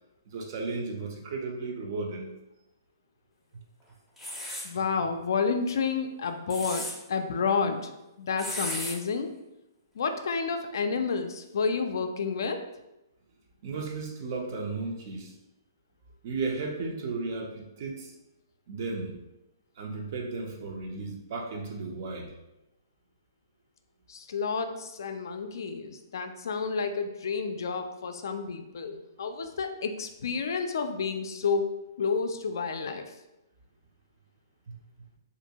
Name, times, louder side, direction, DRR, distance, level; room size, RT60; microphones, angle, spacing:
voice 1, 0.3-2.3 3.5-3.6 13.6-15.3 16.2-18.1 18.7-19.1 19.8-22.3 34.7-34.8, right 3 dB, 45° right, 1 dB, 0.5 m, -34 dB
sound 1, 4.2-4.7 6.3-6.9 8.4-8.9, left 1 dB, ahead, 0.5 m, -35 dB
voice 2, 4.6-7.9 8.2-9.3 10.0-12.6 24.1-33.0, left 5 dB, 65° left, 7 dB, 0.3 m, -30 dB
2.5 x 2.2 x 2.8 m, 0.95 s
hypercardioid pair, 150°, 2 cm